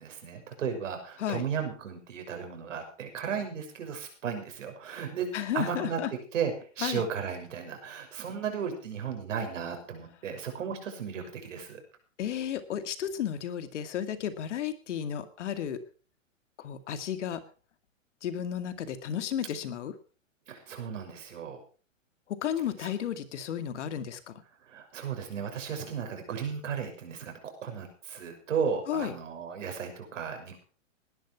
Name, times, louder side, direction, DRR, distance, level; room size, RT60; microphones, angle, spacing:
voice 1, 0.0-5.3 5.5-6.0 6.3-11.8 20.5-21.6 22.8-22.9 24.7-30.6, right 7 dB, 70° right, 5 dB, 6.4 m, -35 dB
voice 2, 5.3-6.1 6.8-7.0 12.2-15.8 16.6-17.4 18.2-19.9 22.3-24.4 28.9-29.1, left 9 dB, 60° left, 10 dB, 2.3 m, -33 dB
19.0 x 11.5 x 4.6 m, 0.38 s
hypercardioid pair, 130°, 39 cm